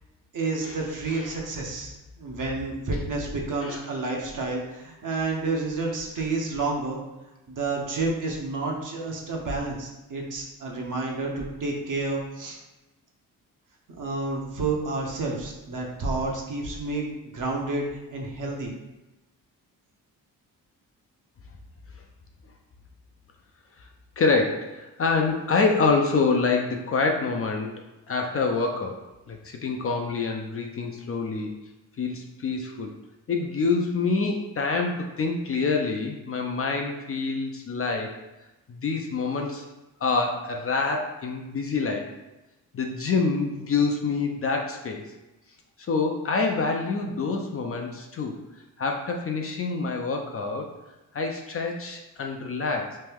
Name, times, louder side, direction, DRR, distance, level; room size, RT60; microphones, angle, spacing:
voice 1, 0.3-7.0 7.5-12.6 13.9-17.8 18.1-18.7, right 3 dB, 50° right, -1 dB, 0.9 m, -30 dB
voice 2, 3.6-4.1 24.2-27.7 28.1-29.0 29.3-31.6 32.0-32.9 33.3-38.2 38.7-39.7 40.0-42.1 42.7-45.1 45.9-48.3 48.8-50.7 51.1-53.0, left 4 dB, 35° left, 2 dB, 0.5 m, -26 dB
3.2 x 2.2 x 3.4 m, 1.0 s
cardioid pair, 70°, 39 cm